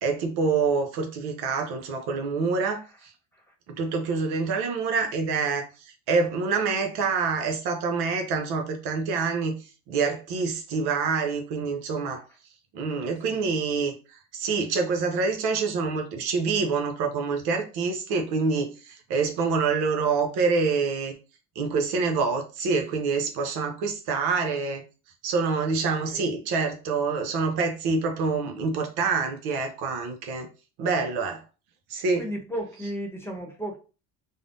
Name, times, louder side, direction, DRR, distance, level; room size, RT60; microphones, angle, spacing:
voice 1, 0.0-3.1 3.7-5.7 6.1-12.2 12.7-21.1 21.6-24.8 25.2-30.5 30.8-31.4 31.9-32.2, right 4 dB, 70° right, 5 dB, 0.7 m, -26 dB
voice 2, 32.2-33.8, equal, 5° left, 0 dB, 1.0 m, -34 dB
3.3 x 2.1 x 2.6 m, 0.33 s
hypercardioid pair, 60°, 40 cm